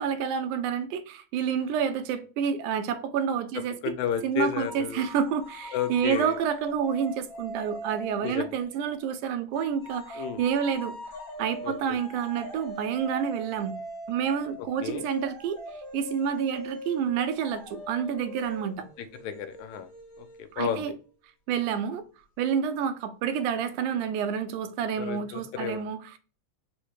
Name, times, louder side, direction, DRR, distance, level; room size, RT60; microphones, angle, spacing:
voice 1, 0.0-3.8 4.2-11.0 11.4-13.8 14.1-15.6 15.9-18.9 20.5-20.9 21.5-22.0 22.4-26.2, right 7 dB, 85° right, 2.0 m, -29 dB
voice 2, 3.8-5.0 5.7-6.3 8.2-8.5 10.2-10.4 11.6-12.0 14.8-15.0 19.0-19.9 20.2-20.3 20.6-20.9 25.0-25.8, left 9 dB, 80° left, 1.9 m, -32 dB
sound 1, 4.6-9.0 9.5-20.9, equal, 50° left, 1.0 m, -42 dB
4.9 x 2.1 x 4.5 m
omnidirectional pair, 3.5 m